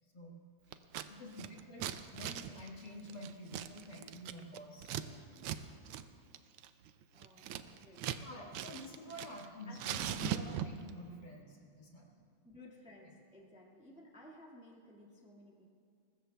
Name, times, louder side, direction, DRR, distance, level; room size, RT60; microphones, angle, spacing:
voice 1, 0.1-6.1 6.6-6.8 8.2-12.2, left 1 dB, 50° left, -2 dB, 2.1 m, -49 dB
Scissors, 0.7-1.1 1.3-5.0 5.4-5.6 5.9-6.0 6.3-8.2 8.5-9.5 9.7-10.9, right 11 dB, 80° right, 1.5 m, -40 dB
voice 2, 1.4-1.9 7.1-9.1 9.6-9.8 12.4-15.7, left 1 dB, 5° right, -4 dB, 1.5 m, -57 dB
22.5 x 20.0 x 2.2 m, 2.3 s
omnidirectional pair, 2.4 m